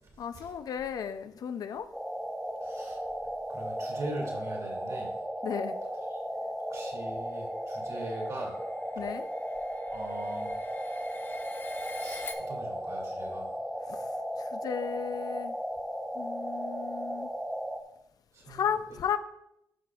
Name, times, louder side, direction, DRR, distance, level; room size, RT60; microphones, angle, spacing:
voice 1, 0.2-1.9 5.4-5.8 9.0-9.3 13.9-14.1 14.4-15.5 16.1-17.3 18.5-19.2, left 8 dB, 65° left, 0.5 m, -34 dB
sound 1, 1.9-17.8, equal, 5° right, 0.6 m, -36 dB
voice 2, 2.6-3.0 3.5-5.1 6.7-8.6 9.9-10.5 12.0-13.5 18.4-18.6, right 2 dB, 50° right, 2.4 m, -41 dB
sound 2, 7.6-12.3, left 3 dB, 30° left, 0.8 m, -46 dB
12.0 x 5.9 x 2.4 m
cardioid pair, 115°, 7 cm